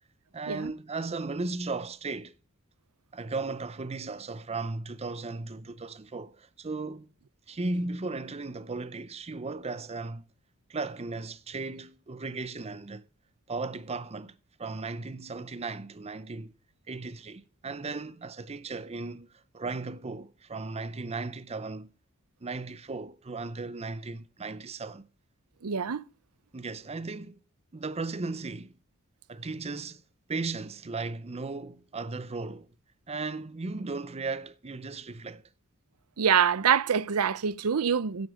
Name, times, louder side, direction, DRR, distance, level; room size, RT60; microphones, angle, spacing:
voice 1, 0.3-2.3 3.1-7.1 7.5-10.3 10.7-13.0 13.5-16.5 16.9-21.9 22.4-25.1 26.5-27.4 27.7-28.7 29.3-30.0 30.3-32.7 33.1-35.4, right 3 dB, 30° right, 0.6 m, -36 dB
voice 2, 25.6-26.0 36.2-38.3, right 7 dB, 85° right, 0.6 m, -25 dB
12.0 x 8.0 x 4.9 m
head